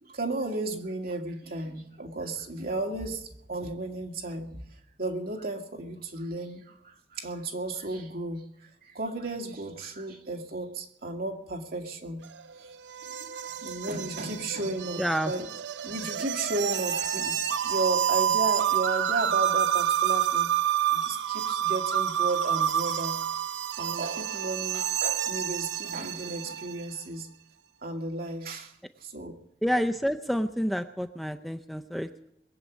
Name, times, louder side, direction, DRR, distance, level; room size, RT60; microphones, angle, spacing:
voice 1, 0.0-4.6 5.0-12.2 12.6-12.7 13.2-15.5 15.8-17.4 17.6-20.5 20.9-23.2 23.8-27.3 27.8-28.7 29.0-29.3, right 2 dB, 55° right, 1 dB, 2.2 m, -34 dB
sound 1, 12.2-26.8, right 10 dB, 85° right, 0.5 m, -28 dB
voice 2, 15.0-15.3 29.6-32.3, equal, ahead, 8 dB, 0.5 m, -29 dB
21.5 x 7.5 x 8.3 m, 0.80 s
head